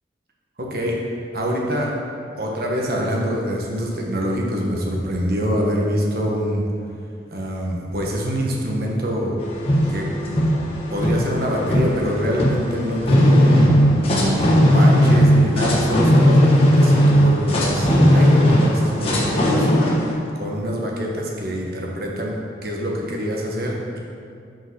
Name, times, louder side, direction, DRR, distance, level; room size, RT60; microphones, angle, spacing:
voice 1, 0.6-1.0 1.3-1.9 2.3-6.6 7.3-9.4 9.9-10.5 10.9-19.9 20.3-24.0, equal, 55° right, -1 dB, 1.2 m, -25 dB
sound 1, 9.4-20.1, equal, 30° left, 1.2 m, -16 dB
5.9 x 5.4 x 6.0 m, 2.4 s
head